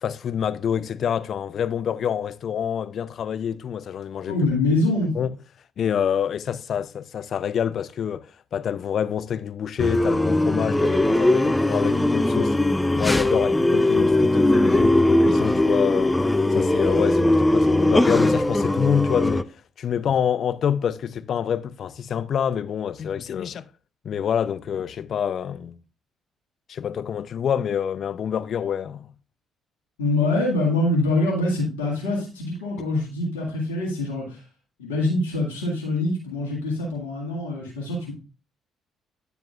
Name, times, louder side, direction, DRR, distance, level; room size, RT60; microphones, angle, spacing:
voice 1, 0.0-4.4 5.1-5.4 5.8-12.6 12.9-16.1 16.5-19.5 19.8-23.6 24.0-25.8 26.7-29.1, left 8 dB, 55° left, 0.5 m, -27 dB
voice 2, 4.3-5.1 30.0-34.4 34.8-38.1, left 2 dB, 85° left, 2.0 m, -24 dB
sound 1, 9.8-19.4, left 1 dB, 10° left, 0.5 m, -20 dB
9.7 x 6.9 x 2.4 m
hypercardioid pair, 50°, 0 cm